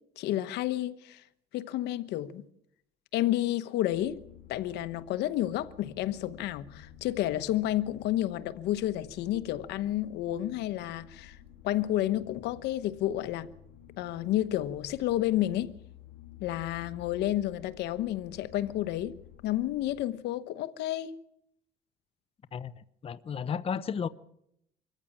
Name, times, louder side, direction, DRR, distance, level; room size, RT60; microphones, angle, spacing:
voice 1, 0.2-1.2 1.5-2.4 3.1-4.2 4.5-11.4 11.6-13.5 14.0-15.7 16.4-19.1 19.4-21.1, left 13 dB, 85° left, 1.2 m, -30 dB
sound 1, 3.9-20.0, left 11 dB, 60° left, 5.8 m, -52 dB
voice 2, 22.5-24.1, left 7 dB, 35° left, 0.8 m, -34 dB
25.0 x 14.5 x 8.7 m
cardioid pair, 110°, 17 cm